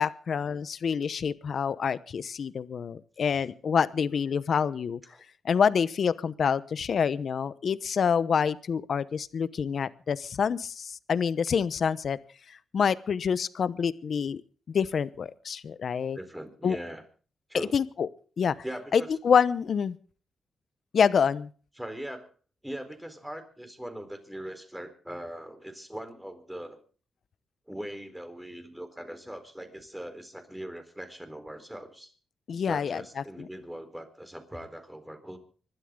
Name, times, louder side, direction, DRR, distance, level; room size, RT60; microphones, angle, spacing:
voice 1, 0.0-5.0 5.4-12.2 12.7-14.4 14.7-16.2 16.6-16.8 17.7-18.1 18.4-18.6 18.9-20.0 20.9-21.5 32.5-33.0, left 6 dB, 65° left, 16 dB, 0.9 m, -27 dB
voice 2, 4.1-4.7 5.1-5.2 16.1-17.0 17.5-17.8 18.6-19.1 21.8-22.3 22.6-26.8 27.7-32.1 32.7-35.4, right 1 dB, 5° right, 7 dB, 4.1 m, -41 dB
25.5 x 12.5 x 3.8 m, 0.39 s
cardioid pair, 80°, 0 cm